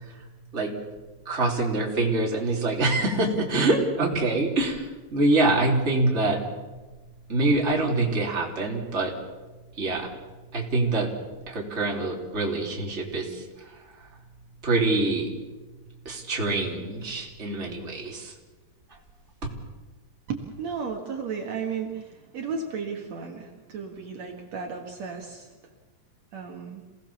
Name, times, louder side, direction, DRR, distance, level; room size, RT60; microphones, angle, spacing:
voice 1, 1.3-6.4 7.3-9.2 9.8-10.1 10.5-11.1 11.5-13.5 14.6-15.3 16.1-18.3, right 2 dB, 20° right, 0 dB, 3.3 m, -25 dB
voice 2, 20.3-25.5 26.3-26.8, right 5 dB, 60° right, 2 dB, 3.0 m, -34 dB
27.5 x 18.5 x 7.2 m, 1.2 s
omnidirectional pair, 3.6 m